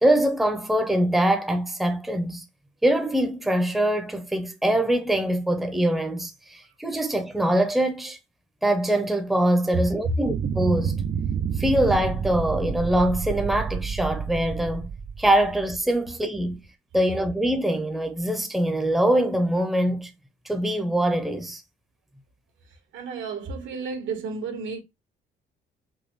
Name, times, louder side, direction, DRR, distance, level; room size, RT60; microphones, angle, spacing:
voice 1, 0.0-2.4 2.8-8.2 8.6-11.0 11.6-14.9 15.2-16.6 16.9-20.1 20.4-21.6, right 1 dB, ahead, 0.8 m, -23 dB
voice 2, 9.7-10.2 22.7-24.8, right 2 dB, 75° right, 1.5 m, -30 dB
sound 1, 10.2-16.0, right 7 dB, 40° right, 0.5 m, -29 dB
5.3 x 2.2 x 3.1 m
cardioid pair, 90°, 20 cm